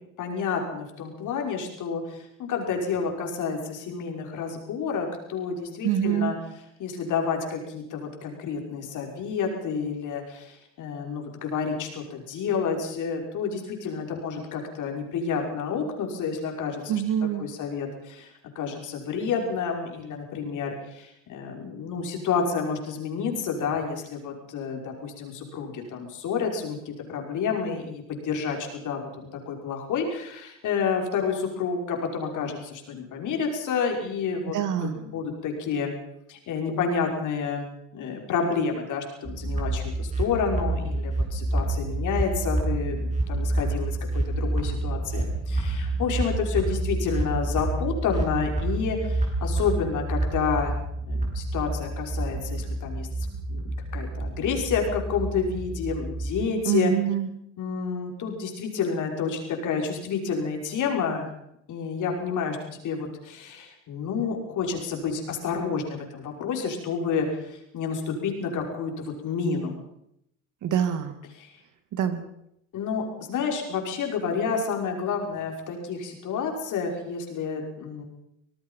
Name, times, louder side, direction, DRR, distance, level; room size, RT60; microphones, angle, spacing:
voice 1, 0.2-6.4 6.8-18.3 18.6-35.9 36.3-37.7 37.9-50.7 51.1-53.1 53.5-53.7 53.9-56.9 57.6-61.3 61.7-69.8 71.3-71.5 72.7-73.0 73.3-78.0, left 5 dB, 50° left, 2 dB, 5.9 m, -29 dB
voice 2, 5.8-6.4 16.9-17.5 34.5-35.0 56.7-57.3 70.6-71.1 71.9-72.2, right 9 dB, 50° right, 9 dB, 2.7 m, -25 dB
sound 1, 39.3-56.5, right 2 dB, 20° right, 7.0 m, -28 dB
26.0 x 18.5 x 5.8 m, 0.78 s
hypercardioid pair, 85°, 39 cm